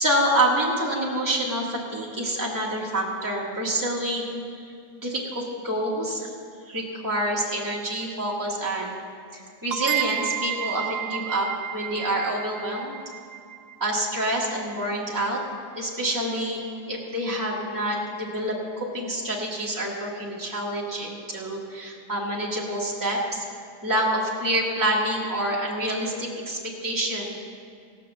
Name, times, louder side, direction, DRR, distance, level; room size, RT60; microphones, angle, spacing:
voice 1, 0.0-4.4 5.0-6.3 6.7-9.0 9.3-13.0 13.8-15.4 15.7-23.4 23.8-27.3, right 1 dB, 10° right, -4 dB, 1.8 m, -27 dB
sound 1, 9.7-15.1, right 11 dB, 70° right, 1.0 m, -32 dB
17.0 x 6.0 x 7.2 m, 2.3 s
omnidirectional pair, 2.0 m